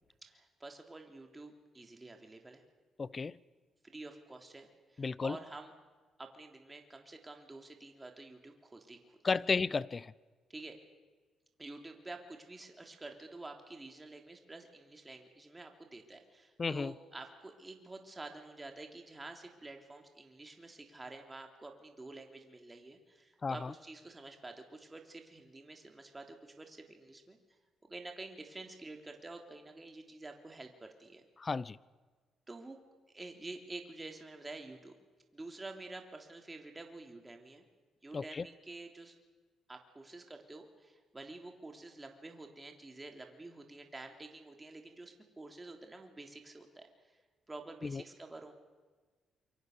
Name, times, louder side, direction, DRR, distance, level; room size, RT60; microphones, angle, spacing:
voice 1, 0.2-2.6 3.8-5.7 6.2-9.2 10.5-10.8 11.6-27.4 27.8-31.2 32.5-32.8 33.1-34.9 35.3-37.6 38.0-39.2 39.7-47.2 47.5-48.5, right 2 dB, 20° right, 3.4 m, -49 dB
voice 2, 3.0-3.3 5.0-5.4 9.2-10.1 16.6-16.9 23.4-23.7 31.4-31.8 38.1-38.4 47.8-48.0, left 4 dB, 35° left, 0.6 m, -33 dB
27.5 x 24.0 x 6.8 m
cardioid pair, 90°, 0 cm